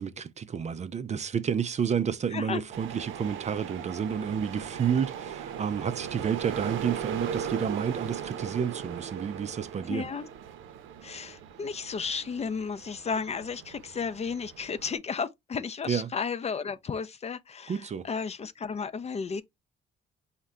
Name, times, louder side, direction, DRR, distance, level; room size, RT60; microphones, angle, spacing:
voice 1, 0.0-10.1 15.9-16.1 17.7-18.1, right 7 dB, 35° right, 0.4 m, -30 dB
sound 1, 2.7-15.0, right 8 dB, 80° right, 0.6 m, -38 dB
voice 2, 9.9-10.3 11.0-19.4, left 5 dB, 35° left, 0.4 m, -33 dB
4.3 x 2.2 x 3.6 m
cardioid pair, 90°, 20 cm